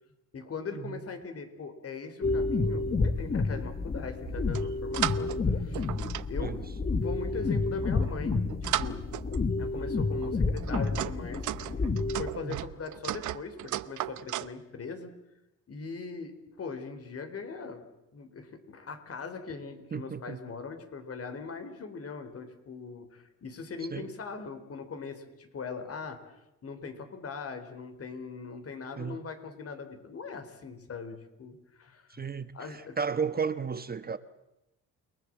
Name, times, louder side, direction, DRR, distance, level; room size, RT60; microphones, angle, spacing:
voice 1, 0.3-5.8 6.3-9.1 9.6-11.5 11.8-15.1 15.7-17.9 18.1-26.4 26.6-32.3 32.5-33.0, left 5 dB, 50° left, 4.1 m, -41 dB
sound 1, 2.2-12.3, left 3 dB, 30° left, 1.5 m, -30 dB
sound 2, 4.2-5.4 5.7-7.1 7.8-9.6 10.2-14.5, right 14 dB, 75° right, 0.9 m, -36 dB
voice 2, 19.9-20.4 23.9-24.1 29.0-29.2 32.1-34.2, right 6 dB, 30° right, 1.2 m, -34 dB
29.5 x 19.5 x 7.6 m
cardioid pair, 90°, 30 cm